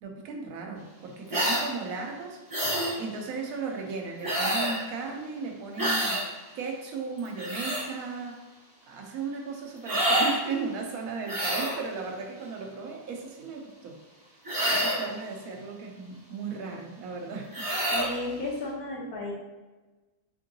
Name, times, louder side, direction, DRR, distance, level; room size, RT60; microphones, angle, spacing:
voice 1, 0.0-2.4 3.0-6.2 6.5-8.4 8.9-14.0 14.7-17.7, right 4 dB, 75° right, 1 dB, 1.1 m, -36 dB
sound 1, 1.3-1.7 2.5-2.9 4.2-4.8 5.8-6.2 7.2-7.8 9.8-10.4 11.2-11.8 14.4-15.1 17.5-18.1, right 1 dB, 15° right, 0.8 m, -27 dB
voice 2, 17.9-19.3, left 2 dB, 70° left, -4 dB, 1.3 m, -33 dB
3.6 x 3.6 x 2.7 m, 1.2 s
omnidirectional pair, 1.6 m